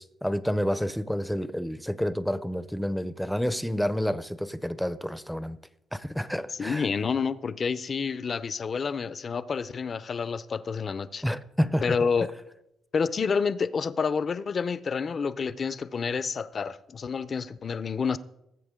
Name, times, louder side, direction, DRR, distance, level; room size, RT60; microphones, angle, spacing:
voice 1, 0.0-5.6 5.9-6.9 11.2-11.9, equal, ahead, 0.6 m, -29 dB
voice 2, 6.6-11.2 11.8-12.3 12.9-18.2, left 5 dB, 45° left, 0.6 m, -29 dB
19.5 x 7.8 x 3.7 m
cardioid pair, 90°, 0 cm